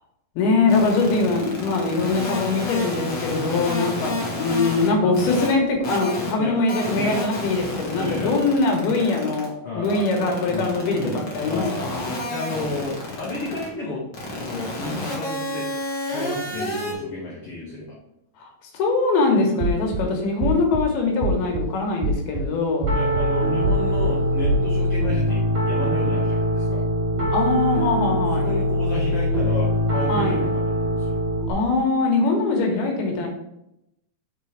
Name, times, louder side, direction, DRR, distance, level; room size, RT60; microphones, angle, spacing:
voice 1, 0.4-12.1 18.4-18.5 18.7-23.0 27.3-28.5 30.1-30.5 31.5-33.3, left 3 dB, 85° left, 2 dB, 3.2 m, -22 dB
sound 1, 0.7-4.9 5.1-5.5 5.8-6.3 6.7-9.4 9.8-13.7 14.1-16.9, left 1 dB, 45° left, 1.5 m, -30 dB
voice 2, 4.0-4.5 5.0-5.6 6.4-6.6 6.9-7.1 8.0-8.3 9.6-10.1 10.4-11.9 12.3-14.0 14.4-15.7 16.1-18.0 22.9-26.8 28.3-31.2, left 2 dB, 70° left, -4 dB, 1.3 m, -32 dB
sound 2, 19.6-20.0 20.4-20.8 21.2-21.6 22.0-22.4 22.8-23.3 23.6-24.1 24.4-24.6, right 3 dB, 75° right, 2.2 m, -24 dB
Piano, 22.9-31.5, equal, 35° right, 1.5 m, -22 dB
6.8 x 4.2 x 4.6 m, 0.84 s
omnidirectional pair, 4.4 m